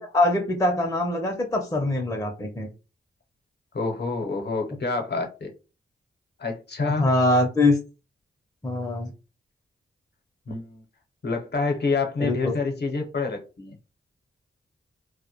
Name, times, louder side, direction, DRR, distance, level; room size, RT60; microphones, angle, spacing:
voice 1, 0.0-2.7 6.9-7.8 8.6-9.1 12.2-12.6, left 2 dB, 15° left, 0.5 m, -23 dB
voice 2, 3.7-5.5 6.4-7.1 10.5-10.8 11.2-13.8, left 4 dB, 50° left, 0.7 m, -27 dB
2.1 x 2.1 x 2.8 m
cardioid pair, 55°, 21 cm